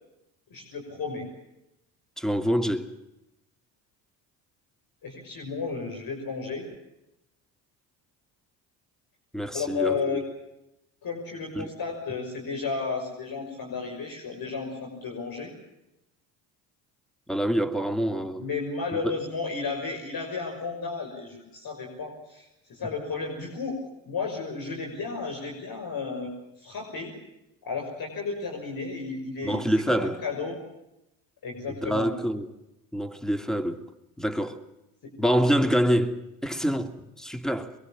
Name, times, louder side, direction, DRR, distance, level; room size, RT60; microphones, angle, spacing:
voice 1, 0.5-1.3 5.0-6.7 9.5-10.2 11.0-15.5 18.4-23.8 24.1-26.3 26.6-27.1 27.6-29.6 29.9-30.6 31.4-32.1 35.0-35.1, left 4 dB, 50° left, 6.2 m, -33 dB
voice 2, 2.2-2.9 9.3-10.2 11.5-11.7 17.3-18.5 18.9-19.1 29.4-30.2 31.7-32.5 32.9-33.8 34.2-34.6 35.2-37.7, equal, ahead, 2.6 m, -26 dB
23.0 x 23.0 x 7.4 m
hypercardioid pair, 60°, 44 cm